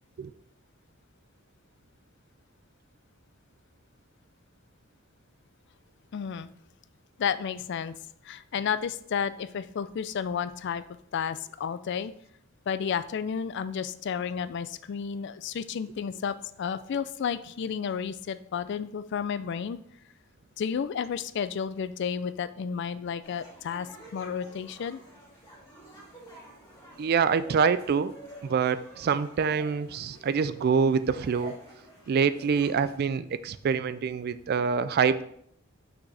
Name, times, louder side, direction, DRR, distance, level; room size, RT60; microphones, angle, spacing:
voice 1, 6.1-6.5 7.2-8.0 8.2-10.8 11.1-12.1 12.7-19.8 20.6-25.0, left 7 dB, 60° left, 14 dB, 0.4 m, -32 dB
sound 1, 23.2-33.0, right 1 dB, 20° left, 2.8 m, -50 dB
voice 2, 27.0-28.1 28.4-31.5 32.1-35.2, right 6 dB, 50° right, 15 dB, 0.3 m, -25 dB
6.1 x 6.1 x 3.3 m, 0.69 s
head